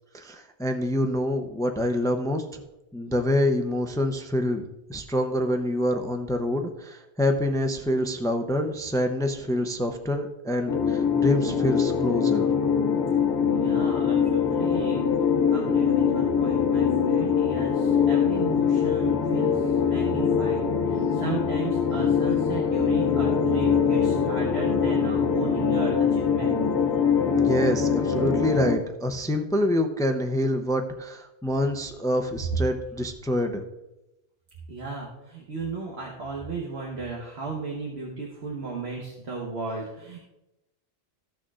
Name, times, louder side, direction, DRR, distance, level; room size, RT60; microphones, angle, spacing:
voice 1, 0.1-2.6 2.9-12.5 27.3-33.6, left 1 dB, 5° left, 5 dB, 0.5 m, -26 dB
sound 1, 10.7-28.8, left 6 dB, 80° left, 1.1 m, -23 dB
voice 2, 13.5-15.1 15.5-26.6 34.7-40.2, right 4 dB, 70° right, -2 dB, 1.5 m, -35 dB
15.5 x 6.3 x 2.5 m, 0.93 s
omnidirectional pair, 1.1 m